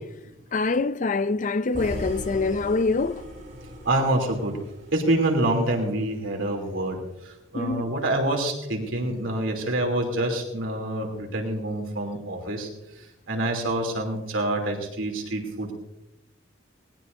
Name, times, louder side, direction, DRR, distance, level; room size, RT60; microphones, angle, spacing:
voice 1, 0.5-3.2 7.6-7.8, left 3 dB, 40° left, 0.5 m, -25 dB
sound 1, 1.7-5.9, equal, 45° right, 6.7 m, -39 dB
voice 2, 3.8-4.6 4.9-12.7 13.3-15.7, right 1 dB, 90° right, 3.2 m, -26 dB
19.5 x 19.0 x 2.7 m
head